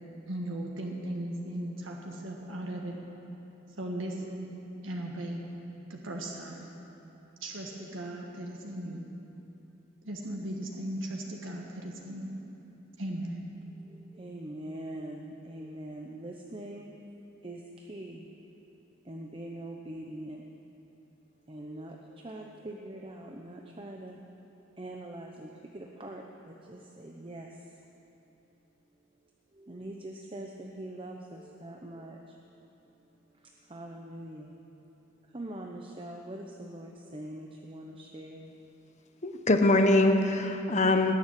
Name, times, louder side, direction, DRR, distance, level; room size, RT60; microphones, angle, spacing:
voice 1, 0.3-3.0 3.8-4.5 4.8-5.4 5.9-6.7 7.4-9.1 10.0-12.3 13.0-13.5, right 1 dB, 75° right, 0 dB, 1.7 m, -37 dB
voice 2, 13.9-16.9 17.4-18.3 19.0-20.4 21.5-24.2 24.8-27.6 29.5-32.4 33.7-34.5 35.3-38.5, right 1 dB, 25° right, 1 dB, 0.8 m, -43 dB
voice 3, 39.2-41.1, left 2 dB, 35° left, 5 dB, 0.9 m, -23 dB
19.0 x 7.1 x 9.7 m, 3.0 s
head